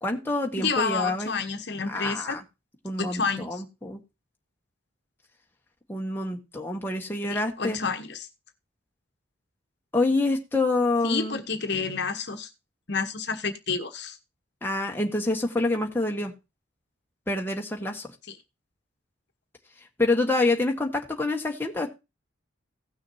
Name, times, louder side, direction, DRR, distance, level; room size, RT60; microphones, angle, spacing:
voice 1, 0.0-1.4 1.9-2.4 2.8-4.0 5.9-7.8 9.9-11.4 14.6-16.3 17.3-18.1 20.0-21.9, left 2 dB, 10° left, 1 dB, 1.4 m, -27 dB
voice 2, 0.6-2.4 3.0-3.6 7.3-8.3 11.0-12.5 12.9-14.2 18.3-18.4, left 4 dB, 55° left, 7 dB, 1.2 m, -29 dB
17.0 x 6.4 x 2.8 m, 0.25 s
head